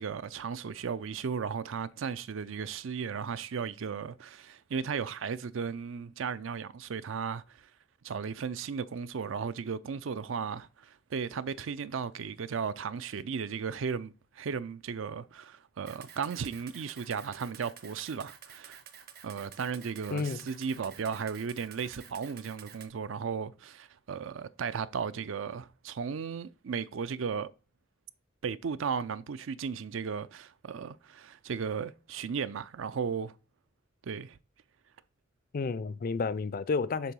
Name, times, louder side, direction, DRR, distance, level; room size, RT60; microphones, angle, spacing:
voice 1, 0.0-7.7 8.0-18.8 19.2-27.5 28.4-33.3 34.0-34.4, right 6 dB, 75° right, 0.4 m, -35 dB
Camera, 15.9-22.9, right 8 dB, 50° right, 0.8 m, -51 dB
voice 2, 20.1-20.5 35.5-37.1, left 4 dB, 45° left, 0.4 m, -31 dB
6.9 x 3.6 x 6.1 m
head